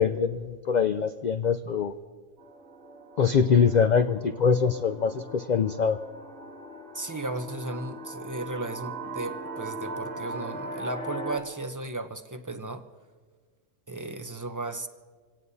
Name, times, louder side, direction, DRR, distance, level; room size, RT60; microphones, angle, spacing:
voice 1, 0.0-1.9 3.2-6.0, left 6 dB, 60° left, 8 dB, 0.4 m, -23 dB
sound 1, 2.4-11.4, right 2 dB, 80° right, 2.3 m, -39 dB
voice 2, 6.9-12.8 13.9-14.9, right 2 dB, 20° right, 7 dB, 0.6 m, -35 dB
27.0 x 17.5 x 2.7 m, 1.5 s
omnidirectional pair, 1.4 m